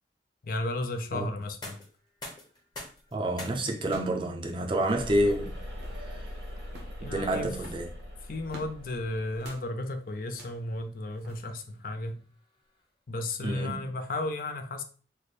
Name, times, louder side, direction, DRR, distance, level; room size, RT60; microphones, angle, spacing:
voice 1, 0.4-1.8 7.0-7.8 8.2-12.3 13.1-14.8, left 2 dB, 50° left, 0.5 m, -34 dB
sound 1, 1.4-13.2, left 2 dB, 25° left, 0.9 m, -51 dB
sound 2, 3.0-3.1 3.8-4.2 4.5-4.6 4.7-5.1 5.6-6.1 6.7-7.0 7.5-8.8 9.4-9.7 10.3-10.6 11.2-11.4, right 1 dB, 60° right, 0.7 m, -48 dB
voice 2, 3.1-5.6 7.0-7.9 13.4-13.9, right 1 dB, 30° right, 0.5 m, -28 dB
sound 3, 4.9-9.5, left 1 dB, 90° right, 1.4 m, -41 dB
3.2 x 2.0 x 4.1 m
head